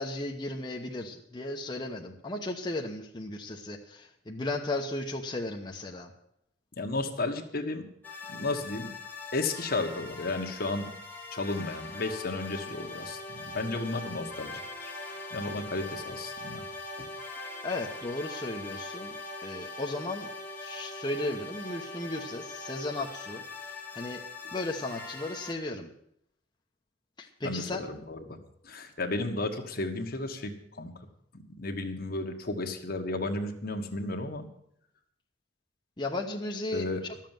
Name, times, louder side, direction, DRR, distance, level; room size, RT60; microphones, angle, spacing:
voice 1, 0.0-6.1 17.6-19.1 19.4-20.3 20.6-24.2 24.5-25.9 27.2-27.8 36.0-36.9, left 2 dB, 25° left, 0 dB, 1.0 m, -35 dB
voice 2, 6.8-7.8 8.3-8.9 9.3-10.9 11.3-16.6 27.4-28.4 28.6-30.9 31.3-34.5 36.7-37.0, left 2 dB, 55° left, 4 dB, 1.5 m, -33 dB
sound 1, 8.0-25.5, left 3 dB, 10° left, 1.8 m, -41 dB
12.5 x 7.5 x 9.0 m, 0.71 s
head